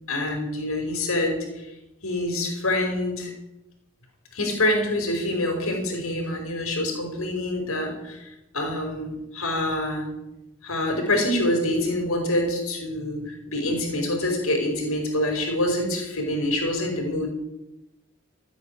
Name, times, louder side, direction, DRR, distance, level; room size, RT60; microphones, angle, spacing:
voice 1, 0.1-1.7 2.0-3.3 4.3-10.1 10.6-17.3, left 1 dB, 80° left, 2 dB, 5.1 m, -26 dB
15.0 x 9.5 x 9.4 m, 0.97 s
head